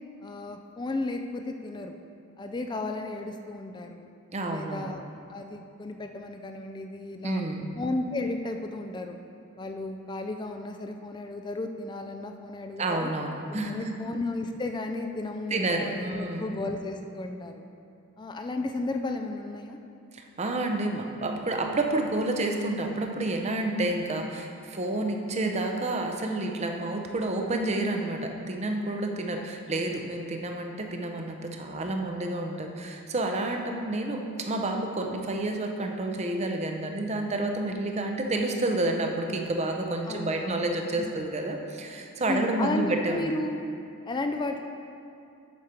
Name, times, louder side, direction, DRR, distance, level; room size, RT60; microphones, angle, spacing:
voice 1, 0.2-2.0 2.4-4.1 4.5-5.0 5.3-7.4 7.8-9.2 9.6-13.1 13.5-17.6 18.2-19.8 29.3-29.5 40.1-40.7 41.0-41.3 42.3-43.6 44.1-44.6, left 2 dB, 20° left, 5 dB, 0.3 m, -34 dB
voice 2, 4.3-4.9 7.2-7.7 12.8-13.9 15.5-16.5 20.1-43.2, right 2 dB, 30° right, 3 dB, 0.6 m, -29 dB
8.4 x 6.6 x 4.4 m, 2.6 s
head